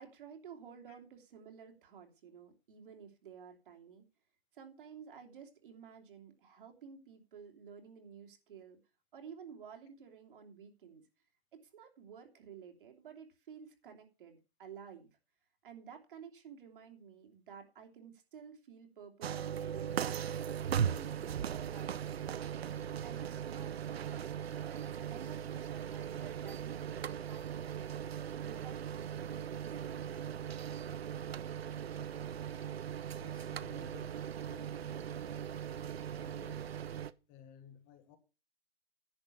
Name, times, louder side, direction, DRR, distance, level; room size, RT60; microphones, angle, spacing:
voice 1, 0.0-4.0 4.5-8.8 9.1-11.0 11.5-15.1 15.6-20.1 20.7-22.5 23.0-30.3, right 7 dB, 60° right, 3.0 m, -53 dB
sound 1, 19.2-37.1, right 9 dB, 80° right, 0.8 m, -39 dB
voice 2, 31.9-32.8 33.2-34.2 34.4-35.6 36.2-36.7 37.3-38.2, left 9 dB, 20° left, 1.3 m, -57 dB
10.5 x 6.3 x 7.0 m
hypercardioid pair, 155°, 30 cm